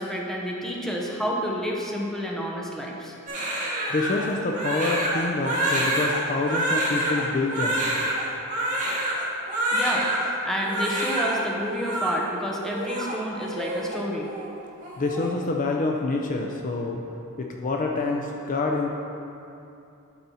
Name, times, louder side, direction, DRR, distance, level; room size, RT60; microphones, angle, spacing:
voice 1, 0.0-3.1 9.7-14.3, equal, ahead, -2 dB, 0.8 m, -29 dB
Crying sobbing, 3.3-10.3 10.6-11.4 11.6-12.1 12.6-14.0 14.3-14.5 14.8-15.3, right 1 dB, 35° right, 1.6 m, -27 dB
voice 2, 3.9-7.9 15.0-17.0 17.4-18.9, left 3 dB, 35° left, 1 dB, 0.5 m, -27 dB
11.5 x 4.3 x 4.2 m, 2.8 s
head